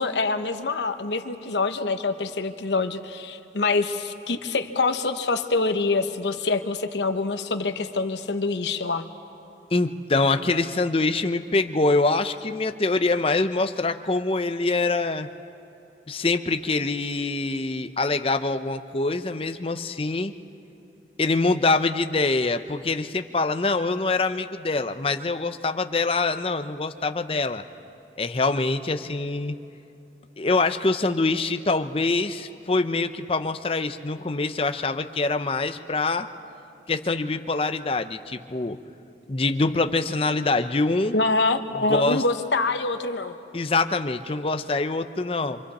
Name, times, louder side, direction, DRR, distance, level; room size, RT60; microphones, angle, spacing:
voice 1, 0.0-9.0 41.1-43.3, left 3 dB, 80° left, 8 dB, 1.0 m, -25 dB
voice 2, 9.7-15.3 16.1-20.3 21.2-27.6 28.2-29.5 30.4-36.3 36.9-38.8 39.3-41.2 41.9-42.2 43.5-45.6, left 3 dB, 30° left, 9 dB, 0.6 m, -24 dB
26.0 x 26.0 x 4.2 m, 2.7 s
head